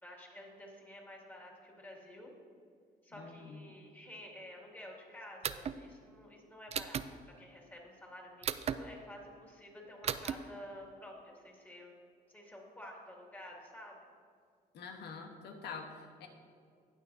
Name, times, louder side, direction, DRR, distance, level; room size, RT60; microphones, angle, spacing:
voice 1, 0.0-2.3 3.0-7.0 7.4-11.9 12.3-13.9, left 1 dB, 10° left, -2 dB, 2.3 m, -51 dB
voice 2, 3.1-3.6 14.7-16.3, left 5 dB, 75° left, 3 dB, 1.3 m, -46 dB
sound 1, 5.4-5.8 6.7-7.1 8.4-8.8 10.0-10.3, right 8 dB, 40° right, 0.4 m, -35 dB
18.5 x 6.3 x 2.7 m, 2.2 s
cardioid pair, 90°, 17 cm